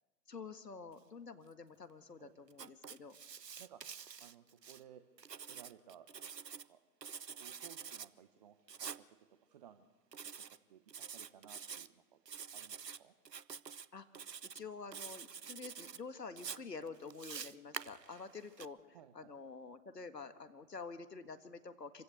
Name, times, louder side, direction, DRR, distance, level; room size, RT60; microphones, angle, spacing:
voice 1, 0.3-3.2 13.9-14.1 14.5-22.0, left 4 dB, 85° left, 9 dB, 1.8 m, -48 dB
Writing, 2.5-4.8 5.2-6.7 7.0-8.1 8.7-9.0 10.1-10.6 10.9-11.9 12.3-13.0 13.3-13.9 14.1-14.6 14.9-16.0 16.4-18.7, right 7 dB, 85° right, 0.8 m, -47 dB
voice 2, 4.2-5.0 5.5-6.1 6.5-6.8 7.4-9.9 10.2-12.2 12.5-13.2 18.9-19.3, right 9 dB, 25° right, 9 dB, 0.8 m, -59 dB
26.5 x 16.0 x 8.1 m, 1.2 s
figure-of-eight pair, 130°, 48 cm